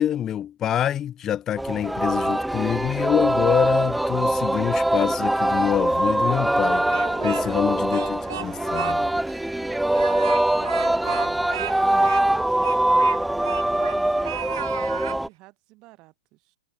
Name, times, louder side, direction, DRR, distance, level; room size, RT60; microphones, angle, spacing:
voice 1, 0.0-6.8 7.2-9.1, left 10 dB, 15° left, 1.1 m, -26 dB
Singing, 1.6-15.3, right 1 dB, ahead, 0.5 m, -23 dB
Speech, 6.7-7.6 7.9-9.0 9.3-9.4 9.9-14.0 14.2-15.2, right 11 dB, 60° right, 5.9 m, -34 dB
voice 2, 7.3-9.0 9.6-10.3 10.8-16.6, right 21 dB, 25° right, 6.2 m, -48 dB
hypercardioid pair, 165°, 2 cm